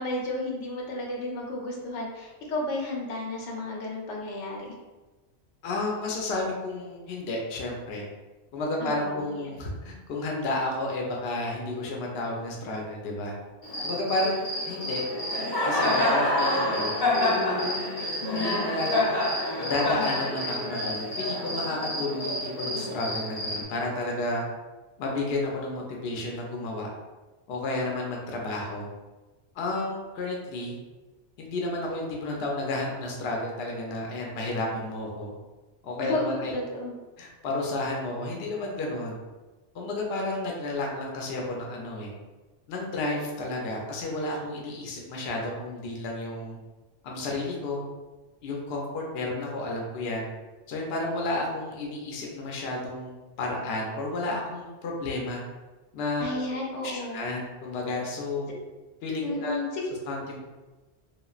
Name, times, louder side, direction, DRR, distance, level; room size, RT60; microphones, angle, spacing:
voice 1, 0.0-4.7 8.8-9.5 36.0-36.9 56.2-57.2 59.2-59.8, left 2 dB, 90° left, -1 dB, 1.0 m, -32 dB
voice 2, 5.6-8.0 8.5-13.3 13.8-15.0 15.6-16.9 17.6-18.0 18.3-19.0 19.6-24.4 25.0-26.9 27.5-28.9 29.6-30.8 31.4-35.3 35.8-36.5 37.2-39.2 39.7-42.1 42.7-46.6 47.0-47.8 48.4-50.3 50.7-53.1 53.4-55.4 55.9-56.3 56.8-58.5 59.0-59.6 60.1-60.4, left 2 dB, 65° left, -1 dB, 0.8 m, -31 dB
Cricket, 13.6-23.6, left 1 dB, 25° left, 0.7 m, -28 dB
3.0 x 2.4 x 2.3 m, 1.2 s
omnidirectional pair, 1.2 m